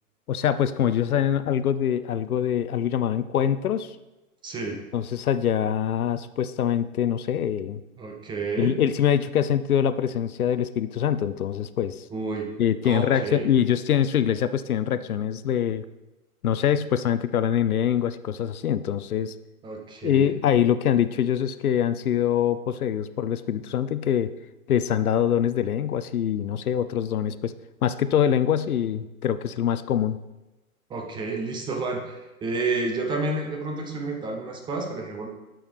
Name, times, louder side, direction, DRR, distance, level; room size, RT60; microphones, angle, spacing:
voice 1, 0.3-3.9 4.9-7.8 8.6-12.0 12.6-15.8 16.4-19.3 20.0-24.3 24.7-27.5 27.8-30.2, left 9 dB, 75° left, 14 dB, 0.6 m, -24 dB
voice 2, 4.4-4.8 8.0-8.8 12.1-12.5 12.8-13.5 19.6-20.4 30.9-35.3, right 3 dB, 10° right, 2 dB, 0.6 m, -30 dB
11.5 x 6.2 x 3.4 m, 1.0 s
figure-of-eight pair, 110°, 44 cm